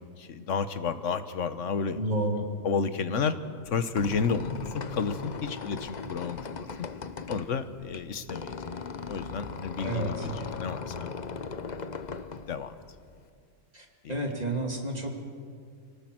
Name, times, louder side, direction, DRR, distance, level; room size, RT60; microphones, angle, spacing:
voice 1, 0.2-2.0 2.6-3.4 3.7-6.9 7.3-8.5 9.1-11.1 11.7-12.0 12.5-12.7 14.0-14.2, left 5 dB, 60° left, 11 dB, 1.4 m, -31 dB
voice 2, 2.0-2.4 9.8-10.3 13.7-15.1, right 1 dB, 30° right, 2 dB, 2.6 m, -30 dB
Squeak, 3.7-13.3, left 5 dB, 40° left, 0.8 m, -39 dB
26.0 x 18.5 x 7.8 m, 2.2 s
omnidirectional pair, 1.5 m